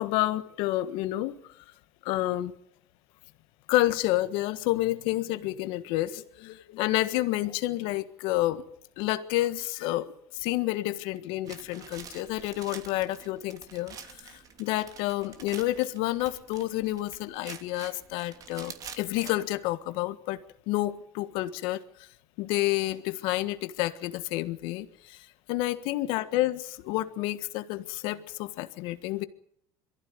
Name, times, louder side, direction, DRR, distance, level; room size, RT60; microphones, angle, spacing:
voice 1, 0.0-1.4 2.0-2.5 3.7-8.6 9.0-10.1 10.3-22.1 22.4-29.2, left 16 dB, 70° left, 12 dB, 1.6 m, -29 dB
sound 1, 11.5-19.3, right 7 dB, 40° right, 2.9 m, -47 dB
23.0 x 15.0 x 9.6 m, 0.68 s
supercardioid pair, 105°, 9 cm